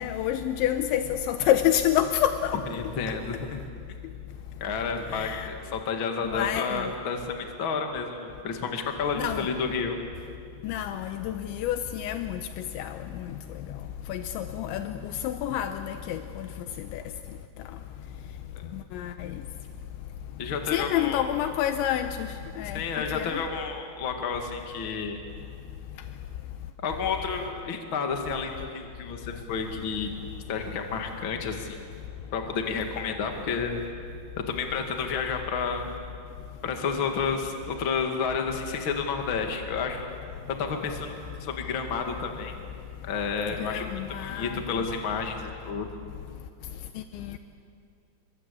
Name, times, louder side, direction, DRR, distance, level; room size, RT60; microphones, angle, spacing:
voice 1, 0.0-2.6 5.1-5.5 6.3-6.9 9.2-9.5 10.6-12.4 12.8-13.0 14.1-14.9 15.2-16.5 16.9-17.0 18.9-19.3 20.7-22.3 22.6-22.8 23.1-23.4 43.6-44.6 47.1-47.2, left 11 dB, 85° left, 3.1 m, -28 dB
voice 2, 2.7-3.6 4.6-10.0 18.5-18.6 20.4-21.2 22.7-25.2 26.8-30.1 30.5-31.7 32.3-33.8 34.5-36.0 36.6-40.1 40.5-42.5 43.0-43.8 44.2-45.9, left 5 dB, 50° left, 1.4 m, -30 dB
29.0 x 23.5 x 8.4 m
omnidirectional pair, 5.3 m